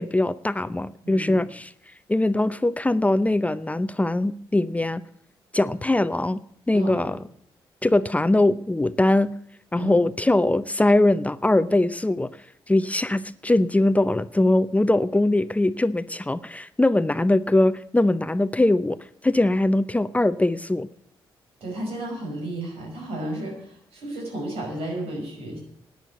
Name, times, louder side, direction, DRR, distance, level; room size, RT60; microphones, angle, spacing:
voice 1, 0.0-1.7 2.1-5.0 5.5-6.4 6.7-7.2 7.8-9.3 9.7-12.3 12.7-19.0 19.2-20.9, left 2 dB, 15° left, 14 dB, 0.6 m, -21 dB
voice 2, 1.0-1.4 6.7-7.1 9.8-10.1 21.6-25.6, right 1 dB, 85° right, 1 dB, 5.2 m, -33 dB
10.5 x 9.4 x 8.0 m, 0.66 s
supercardioid pair, 60°, 10 cm